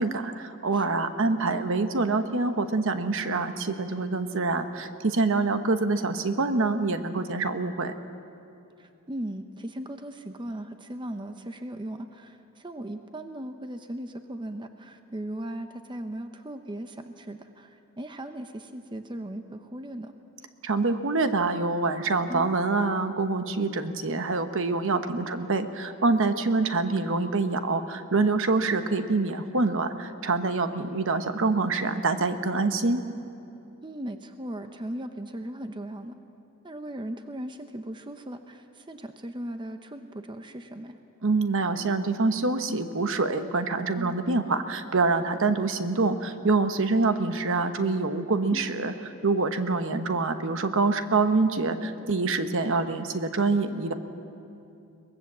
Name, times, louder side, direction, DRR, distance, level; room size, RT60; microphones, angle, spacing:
voice 1, 0.0-7.9 20.6-33.0 41.2-48.9 49.2-53.9, right 3 dB, 60° right, 9 dB, 1.0 m, -26 dB
voice 2, 8.8-20.1 22.3-22.5 25.1-25.3 33.8-36.2 36.6-41.0 44.0-44.2 48.5-48.7, right 1 dB, 20° right, 7 dB, 0.8 m, -38 dB
23.0 x 19.5 x 7.4 m, 2.7 s
head